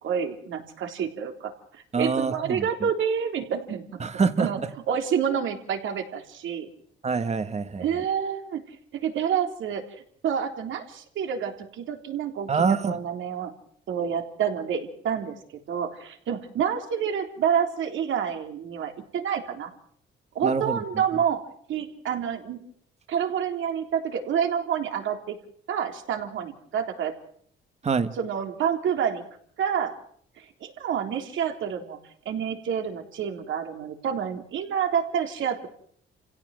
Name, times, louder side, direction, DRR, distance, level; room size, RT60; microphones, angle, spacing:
voice 1, 0.0-3.8 4.4-4.6 4.9-6.7 7.8-13.5 13.9-15.4 15.7-19.7 20.4-21.4 21.7-22.6 23.1-25.4 25.7-27.1 28.2-29.2 29.6-29.9 30.4-32.0 32.3-35.7, right 8 dB, 75° right, 5 dB, 3.6 m, -28 dB
voice 2, 1.9-2.7 4.0-4.7 7.0-7.9 12.5-13.0 20.4-20.8 27.8-28.1, right 5 dB, 35° right, 10 dB, 1.5 m, -25 dB
28.0 x 16.5 x 7.7 m, 0.63 s
cardioid pair, 90°, 20 cm